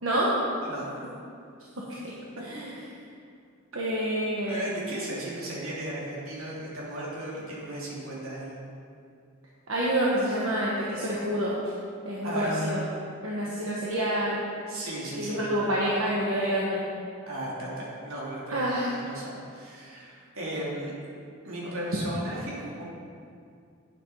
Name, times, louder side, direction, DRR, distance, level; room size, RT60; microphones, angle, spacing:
voice 1, 0.0-0.3 1.9-2.0 2.5-2.7 3.7-4.5 9.7-11.5 12.0-12.8 13.2-14.4 15.2-16.8 18.5-18.9, right 1 dB, 70° right, -6 dB, 1.4 m, -27 dB
voice 2, 4.5-8.5 11.6-11.8 12.2-12.8 14.7-15.6 17.3-21.0 21.4-22.8, right 1 dB, 85° right, -5 dB, 2.9 m, -36 dB
9.0 x 7.8 x 5.6 m, 2.4 s
head